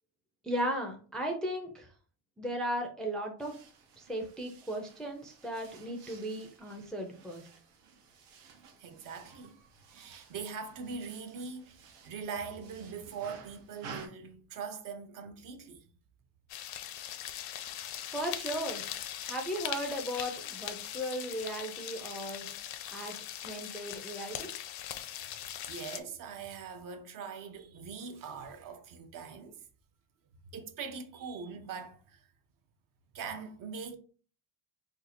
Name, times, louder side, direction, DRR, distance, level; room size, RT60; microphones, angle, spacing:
voice 1, 0.4-1.9 2.4-3.5 4.0-7.5 18.1-18.8 19.2-22.5 22.9-23.1 23.4-24.5, equal, ahead, 0.4 m, -36 dB
sound 1, 3.4-14.1, right 5 dB, 85° right, 0.9 m, -53 dB
voice 2, 8.8-11.8 12.0-15.8 25.2-29.6 30.5-32.3 33.1-33.9, right 5 dB, 50° right, 0.6 m, -42 dB
sound 2, 16.5-26.0, left 11 dB, 60° left, 0.5 m, -40 dB
2.6 x 2.4 x 4.1 m
cardioid pair, 140°, 41 cm